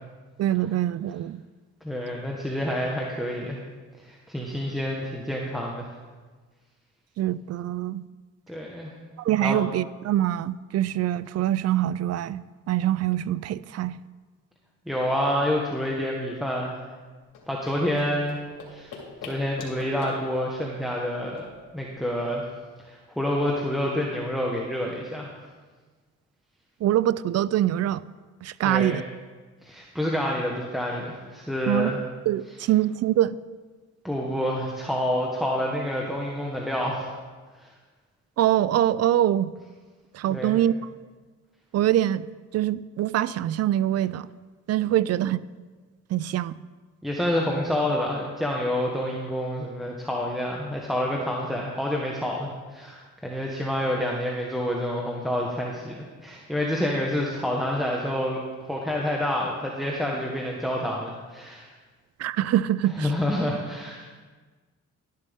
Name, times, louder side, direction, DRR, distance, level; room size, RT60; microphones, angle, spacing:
voice 1, 0.4-1.4 7.2-8.0 9.2-14.0 26.8-28.0 28.4-29.0 31.7-31.9 32.3-33.4 38.4-39.5 40.1-40.9 41.7-42.3 42.5-44.3 44.7-45.4 46.1-46.5 62.2-63.1, right 12 dB, 55° right, 18 dB, 0.4 m, -24 dB
voice 2, 1.8-3.6 4.0-5.9 8.5-8.9 9.4-9.6 14.9-16.8 17.5-18.4 18.7-19.0 19.3-21.4 21.7-22.4 22.8-25.3 28.6-29.0 29.6-32.0 34.0-37.1 37.6-37.7 40.3-40.6 47.0-58.4 58.7-61.7 62.9-64.1, left 1 dB, ahead, -2 dB, 1.3 m, -28 dB
sound 1, 17.2-22.4, left 4 dB, 80° left, 2.6 m, -44 dB
12.0 x 11.0 x 3.6 m, 1.4 s
cardioid pair, 90°, 30 cm